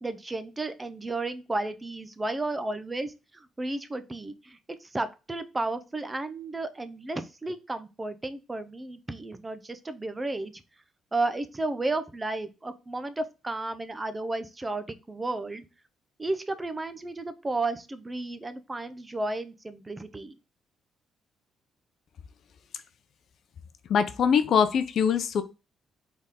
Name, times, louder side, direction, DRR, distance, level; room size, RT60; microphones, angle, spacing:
voice 1, 0.0-10.6 11.1-15.6 16.2-20.4, right 2 dB, 20° right, 11 dB, 0.6 m, -33 dB
voice 2, 23.9-25.4, left 7 dB, 65° left, 10 dB, 0.6 m, -23 dB
4.1 x 3.6 x 3.7 m, 0.28 s
cardioid pair, 90°, 0 cm